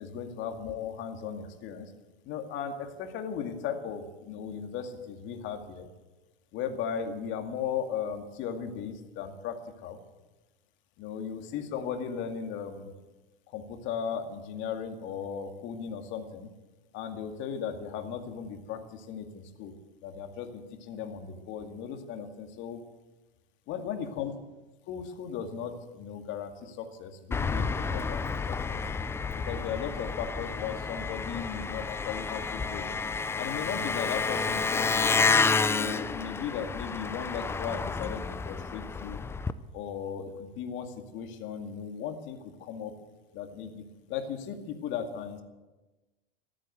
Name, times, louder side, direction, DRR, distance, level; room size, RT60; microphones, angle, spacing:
voice 1, 0.0-1.9 2.2-5.9 6.5-10.0 11.0-12.9 13.5-16.5 16.9-19.7 20.0-22.8 23.7-24.3 24.9-28.8 29.3-32.9 33.4-35.1 35.6-39.2 39.7-42.9 43.3-45.4, left 7 dB, 40° left, 5 dB, 2.3 m, -37 dB
Engine, 27.3-39.5, left 4 dB, 10° left, 0.5 m, -30 dB
14.0 x 12.5 x 7.9 m, 1.1 s
hypercardioid pair, 105°, 30 cm